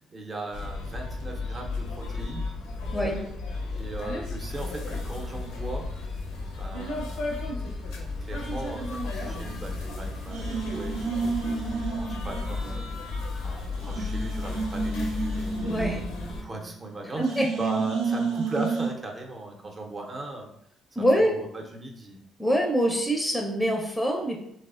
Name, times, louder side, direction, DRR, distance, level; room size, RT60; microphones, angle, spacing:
voice 1, 0.1-2.5 3.7-5.9 6.6-7.8 8.2-20.5 21.2-22.2, right 2 dB, 35° right, 1 dB, 0.7 m, -38 dB
sound 1, 0.5-16.4, left 3 dB, 75° left, 0.5 m, -33 dB
sound 2, 9.3-10.0 10.3-12.9 13.2-13.3 13.7-16.8 17.2-18.9, right 4 dB, 80° right, 0.4 m, -31 dB
voice 2, 15.6-16.0 17.2-17.5 21.0-21.3 22.4-24.4, equal, 5° left, 1 dB, 0.5 m, -24 dB
3.2 x 2.0 x 2.4 m, 0.74 s
hypercardioid pair, 50°, 0 cm